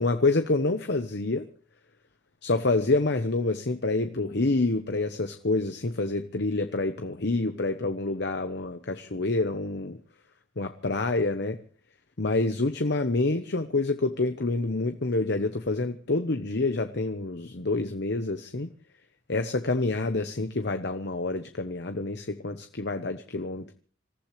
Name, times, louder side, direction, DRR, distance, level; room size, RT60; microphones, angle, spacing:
voice 1, 0.0-1.5 2.4-10.0 10.6-11.6 12.2-18.7 19.3-23.7, left 2 dB, 60° left, 8 dB, 1.0 m, -27 dB
27.0 x 15.0 x 3.3 m, 0.40 s
head